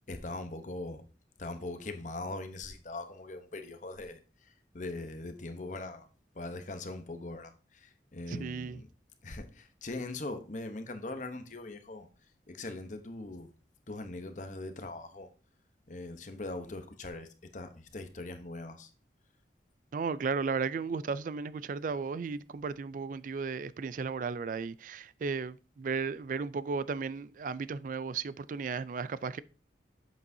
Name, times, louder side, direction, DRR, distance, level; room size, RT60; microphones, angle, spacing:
voice 1, 0.1-1.0 1.4-6.1 6.3-8.9 9.2-12.1 12.5-13.5 13.9-15.3 15.9-18.9, left 2 dB, 45° left, 0.9 m, -41 dB
voice 2, 8.3-8.8 19.9-29.4, right 5 dB, 45° right, 0.3 m, -35 dB
8.2 x 7.3 x 2.7 m
head